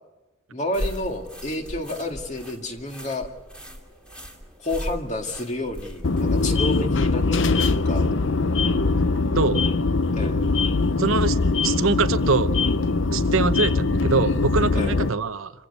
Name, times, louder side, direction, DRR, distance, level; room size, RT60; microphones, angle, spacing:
voice 1, 0.5-3.3 4.6-8.1 10.1-10.4 14.7-15.0, left 1 dB, 35° left, 4 dB, 2.2 m, -30 dB
sound 1, 0.7-6.8, equal, 5° left, 2.5 m, -37 dB
sound 2, 6.0-15.1, left 3 dB, 65° left, 0.7 m, -22 dB
voice 2, 9.4-9.7 11.0-11.4 11.6-12.5 13.1-15.5, right 4 dB, 85° right, 11 dB, 0.9 m, -23 dB
27.0 x 16.0 x 8.1 m, 1.2 s
head